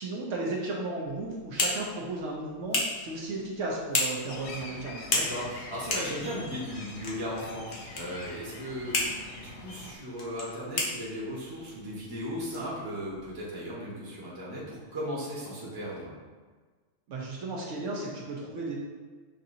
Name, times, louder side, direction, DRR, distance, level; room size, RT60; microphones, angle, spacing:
voice 1, 0.0-5.1 17.1-18.8, right 2 dB, 70° right, -3 dB, 1.0 m, -34 dB
sound 1, 1.0-13.4, left 2 dB, 50° left, 0.9 m, -35 dB
sound 2, 4.3-10.0, left 3 dB, 90° left, 1.0 m, -44 dB
voice 2, 5.1-16.1, equal, 20° right, -6 dB, 0.9 m, -37 dB
6.4 x 2.7 x 2.6 m, 1.4 s
omnidirectional pair, 1.4 m